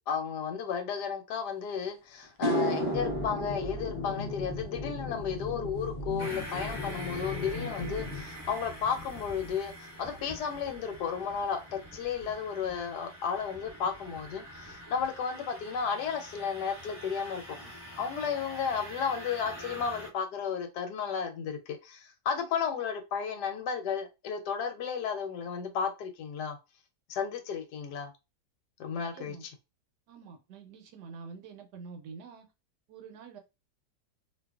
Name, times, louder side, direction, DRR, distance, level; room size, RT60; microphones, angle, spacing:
voice 1, 0.1-17.6 18.0-26.6 27.1-28.1 28.8-29.4, left 6 dB, 80° left, 1.2 m, -33 dB
sound 1, 1.7-1.8 2.2-10.7 11.0-11.4 15.0-15.1 16.8-16.9 17.2-17.3 17.6-18.1, equal, 35° right, 0.5 m, -37 dB
sound 2, 2.8-8.2, left 3 dB, 50° left, 0.8 m, -38 dB
sound 3, 6.2-20.1, equal, 15° left, 1.2 m, -45 dB
voice 2, 29.1-29.5 30.1-32.5 32.9-33.4, right 5 dB, 75° right, 1.2 m, -47 dB
2.7 x 2.3 x 2.3 m
omnidirectional pair, 1.8 m